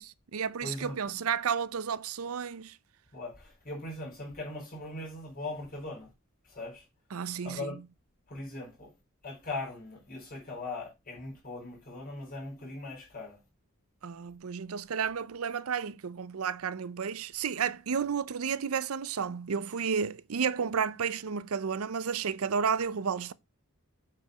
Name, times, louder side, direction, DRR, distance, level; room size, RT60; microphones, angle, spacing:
voice 1, 0.0-2.8 7.1-7.8 14.0-23.3, right 6 dB, 90° right, 0.6 m, -32 dB
voice 2, 0.6-1.0 3.1-6.1 6.5-6.8 7.4-7.8 8.3-8.9 9.2-13.4, left 2 dB, 45° left, 4.9 m, -40 dB
8.5 x 4.7 x 4.8 m
head